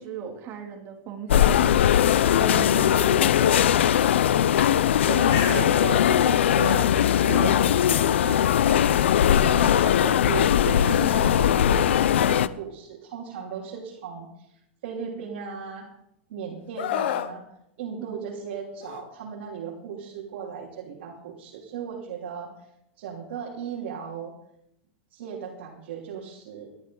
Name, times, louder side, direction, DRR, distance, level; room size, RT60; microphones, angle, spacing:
voice 1, 0.0-1.8 2.4-3.9 18.0-18.1, right 7 dB, 40° right, 2 dB, 3.2 m, -37 dB
sound 1, 1.3-12.5, left 10 dB, 90° left, 0.6 m, -20 dB
Bird, 4.8-12.4, left 5 dB, 55° left, 4.9 m, -41 dB
voice 2, 5.1-6.9 7.2-8.9 9.3-14.5 14.8-15.9 16.3-17.4 17.8-22.5 23.0-24.3 25.1-26.7, right 7 dB, 75° right, -3 dB, 3.2 m, -36 dB
Screaming, 16.8-17.3 18.8-19.0, left 11 dB, 70° left, 1.0 m, -28 dB
18.5 x 12.5 x 3.9 m, 0.78 s
supercardioid pair, 135°, 6 cm